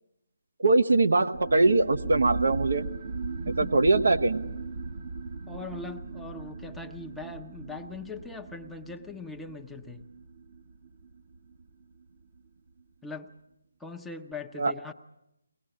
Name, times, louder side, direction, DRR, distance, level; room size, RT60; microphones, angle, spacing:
voice 1, 0.6-2.9 3.6-4.4 14.6-14.9, right 2 dB, 65° right, 7 dB, 1.3 m, -22 dB
sound 1, 1.3-12.5, right 4 dB, 40° right, 1.3 m, -38 dB
voice 2, 3.5-3.8 5.5-10.1 13.0-13.3 13.8-14.9, left 4 dB, 5° left, 2 dB, 0.9 m, -41 dB
23.0 x 19.5 x 8.8 m, 0.85 s
figure-of-eight pair, 150°, 0 cm